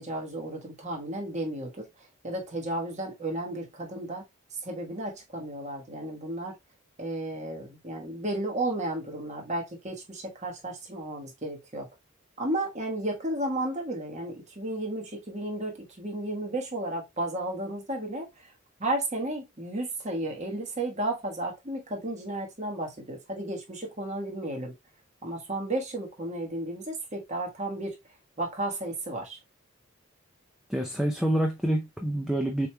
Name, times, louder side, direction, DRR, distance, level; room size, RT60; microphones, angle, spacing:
voice 1, 0.0-4.2 4.5-6.5 7.0-11.9 12.4-18.5 18.8-24.7 25.2-28.0 28.4-29.4, right 1 dB, 35° right, 1.3 m, -33 dB
voice 2, 30.7-32.7, right 1 dB, ahead, 0.5 m, -27 dB
6.7 x 3.1 x 2.2 m
head